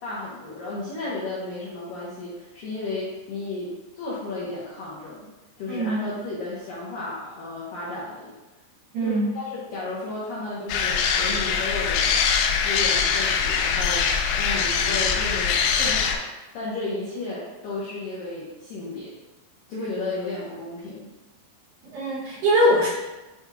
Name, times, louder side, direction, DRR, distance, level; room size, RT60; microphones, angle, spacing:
voice 1, 0.0-5.3 5.6-8.3 9.0-12.1 12.6-14.1 14.4-16.3 16.5-19.1 19.7-21.1, left 2 dB, 75° left, -8 dB, 2.1 m, -33 dB
voice 2, 5.7-6.0 8.9-9.3 21.9-22.9, equal, 75° right, -6 dB, 2.1 m, -21 dB
sound 1, 10.7-16.2, left 6 dB, 90° left, 3.1 m, -23 dB
9.5 x 4.4 x 2.4 m, 1.1 s
omnidirectional pair, 5.4 m